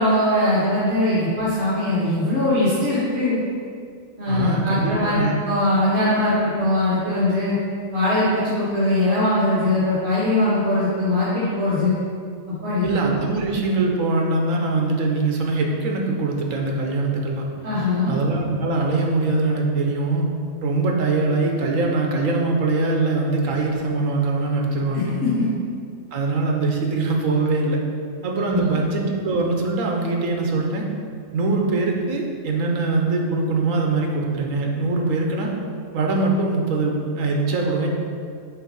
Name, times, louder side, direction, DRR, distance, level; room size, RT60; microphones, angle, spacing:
voice 1, 0.0-3.4 4.2-7.6 7.9-11.9 12.5-12.9 17.6-18.1 24.9-25.0 28.4-28.6, left 1 dB, 50° right, -12 dB, 1.8 m, -21 dB
voice 2, 4.3-5.4 12.8-17.4 18.1-20.3 20.6-25.1 26.1-27.8 28.2-30.9 31.3-35.5 35.9-37.9, right 3 dB, 75° right, 1 dB, 1.2 m, -22 dB
7.2 x 2.7 x 5.4 m, 2.3 s
omnidirectional pair, 1.4 m